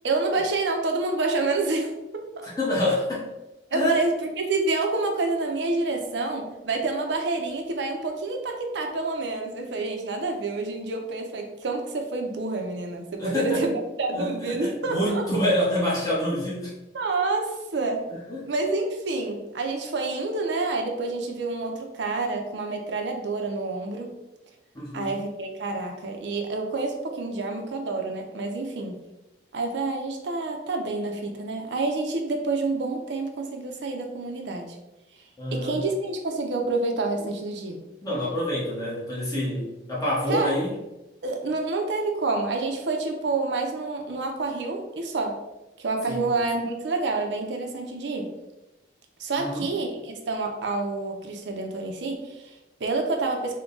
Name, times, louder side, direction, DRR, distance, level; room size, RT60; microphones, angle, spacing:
voice 1, 0.0-1.9 2.4-2.5 3.7-15.2 16.9-18.1 18.5-24.1 24.9-29.0 29.5-34.8 35.5-37.8 40.3-40.6 41.2-45.4 45.8-48.3 49.2-53.6, right 3 dB, 80° right, 3 dB, 0.5 m, -28 dB
voice 2, 2.6-3.3 3.7-4.0 13.2-13.7 14.1-16.7 18.1-18.5 24.7-25.1 35.4-35.8 38.0-40.7 46.1-46.3 49.4-49.7, left 1 dB, 20° left, -6 dB, 1.0 m, -27 dB
3.5 x 2.2 x 3.8 m, 0.99 s
head